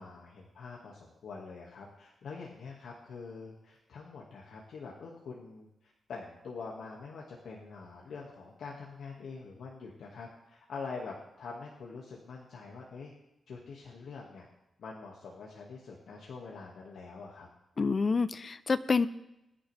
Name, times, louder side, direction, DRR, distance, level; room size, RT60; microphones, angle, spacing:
voice 1, 0.0-13.1 13.5-14.5 14.8-17.5, left 4 dB, 85° left, -3 dB, 2.0 m, -45 dB
voice 2, 17.8-19.1, left 4 dB, 40° left, 14 dB, 0.6 m, -27 dB
21.0 x 10.5 x 3.5 m, 0.88 s
wide cardioid pair, 135°, 0 cm